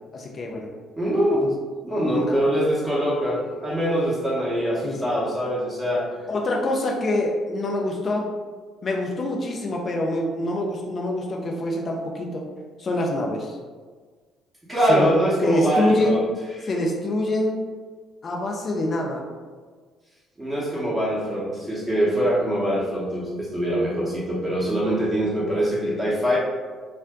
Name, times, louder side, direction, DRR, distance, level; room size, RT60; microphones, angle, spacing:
voice 1, 0.1-0.7 1.4-1.5 1.9-2.4 4.8-5.2 6.3-8.3 8.8-12.5 12.8-13.6 14.9-15.1 15.4-16.2 16.6-17.6 18.2-19.2, left 1 dB, 40° left, 0 dB, 0.5 m, -25 dB
voice 2, 1.0-1.5 1.8-6.1 14.7-16.3 16.6-16.7 20.4-26.4, equal, 10° right, -7 dB, 0.9 m, -23 dB
2.6 x 2.1 x 3.5 m, 1.5 s
figure-of-eight pair, 50°, 0 cm